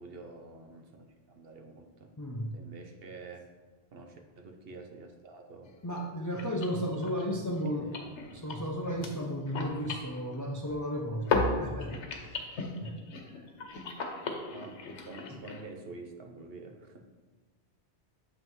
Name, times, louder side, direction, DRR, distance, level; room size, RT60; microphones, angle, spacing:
voice 1, 0.0-2.1 2.5-3.5 3.9-5.7 7.4-8.1 14.5-14.8 15.1-17.1, right 3 dB, 60° right, 4 dB, 0.9 m, -48 dB
voice 2, 2.2-2.5 5.8-7.9 8.3-11.3 11.6-12.4 12.8-13.0 13.2-13.5, equal, 25° left, 0 dB, 0.4 m, -34 dB
sound 1, 5.6-5.7 6.0-6.1 6.3-10.9 11.2-15.6, left 3 dB, 85° left, 1.1 m, -36 dB
7.4 x 5.5 x 3.1 m, 1.4 s
omnidirectional pair, 1.1 m